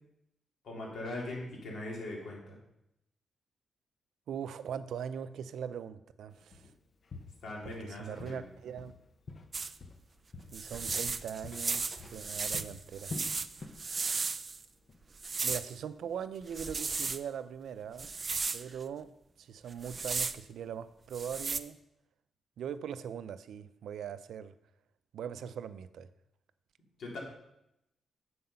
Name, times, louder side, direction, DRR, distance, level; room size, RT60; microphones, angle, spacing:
voice 1, 0.6-2.6 7.4-8.5 27.0-27.2, left 2 dB, 70° left, -3 dB, 3.6 m, -40 dB
voice 2, 4.3-6.7 7.6-8.9 10.5-11.9 12.1-13.1 15.4-18.1 18.5-19.1 19.4-21.8 22.6-24.5 25.1-26.1, right 8 dB, 80° right, 12 dB, 0.5 m, -41 dB
Walk footsteps, 6.5-6.7 7.1-8.5 8.8-10.1 10.3-13.9 14.2-14.4 14.9-15.0, left 3 dB, 40° left, 0.8 m, -46 dB
sound 1, 9.5-9.7 10.5-14.6 15.2-15.7 16.5-17.2 18.0-18.6 19.7-20.4 21.1-21.6, right 4 dB, 30° right, 0.4 m, -35 dB
9.7 x 7.7 x 5.6 m, 0.84 s
wide cardioid pair, 160°, 0 cm